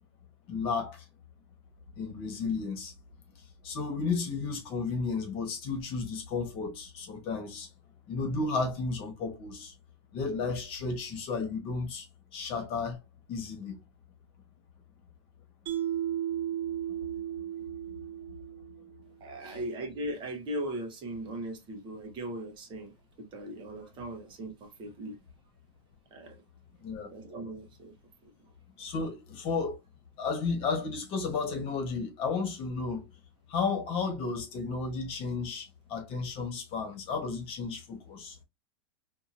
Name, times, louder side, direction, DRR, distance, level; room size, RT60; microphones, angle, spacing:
voice 1, 0.5-1.0 2.0-2.9 3.6-7.7 8.1-9.7 10.1-12.1 12.3-13.0 13.3-13.8 19.4-19.6 26.8-27.1 28.8-29.8 30.2-33.1 33.5-38.4, left 4 dB, 40° left, 1.3 m, -33 dB
Mallet percussion, 15.7-18.9, right 11 dB, 60° right, 1.2 m, -34 dB
voice 2, 19.2-25.2 26.1-26.4 27.1-27.9, right 1 dB, 35° right, 1.0 m, -38 dB
2.7 x 2.6 x 2.5 m
hypercardioid pair, 115°, 14 cm